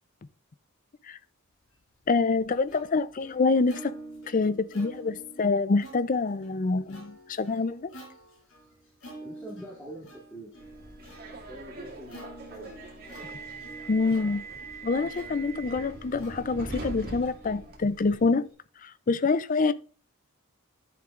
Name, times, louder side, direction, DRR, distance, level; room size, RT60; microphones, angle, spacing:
Plucked string instrument, 1.8-18.5, right 1 dB, 65° left, 5.0 m, -48 dB
voice 1, 2.1-3.9 4.3-7.9 13.9-14.4 14.8-18.5 18.8-19.7, left 4 dB, 40° left, 0.4 m, -26 dB
voice 2, 9.2-11.0 11.5-12.7, right 1 dB, 5° left, 2.5 m, -45 dB
Subway metro underground, 10.6-18.2, right 2 dB, 45° right, 2.1 m, -42 dB
12.0 x 7.0 x 2.5 m
head